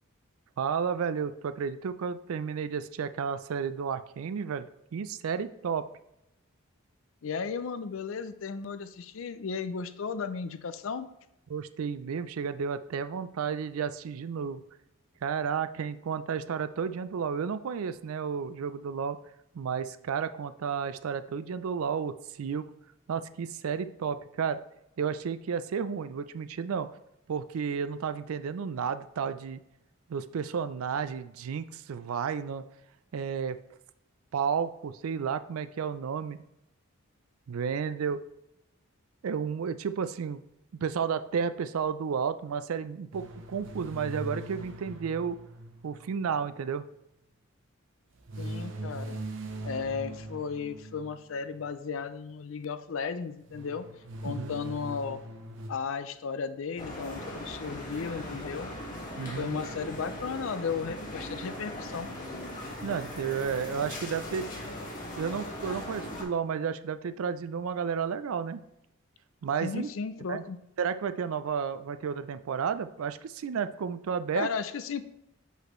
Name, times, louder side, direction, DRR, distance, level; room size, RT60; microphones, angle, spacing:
voice 1, 0.6-4.7 4.9-5.9 11.5-14.6 15.2-19.2 19.5-22.7 23.1-24.6 25.0-26.9 27.3-29.6 30.1-32.6 33.1-33.6 34.3-36.4 37.5-38.2 39.2-40.4 40.8-45.4 45.8-46.9 54.2-54.5 59.2-59.6 62.8-64.5 65.2-68.6 69.4-69.9 70.3-70.4 70.8-74.5, right 6 dB, 85° right, 13 dB, 0.4 m, -32 dB
voice 2, 7.2-11.1 48.4-49.2 49.6-53.9 54.2-55.2 55.7-58.7 59.4-62.1 69.6-70.6 74.3-75.0, left 5 dB, 65° left, 12 dB, 0.4 m, -35 dB
sound 1, 43.1-46.7 48.3-51.4 53.5-55.7, right 1 dB, 60° right, 0.7 m, -41 dB
sound 2, 56.8-66.2, left 1 dB, 40° left, 1.7 m, -39 dB
5.9 x 5.5 x 3.1 m, 0.82 s
head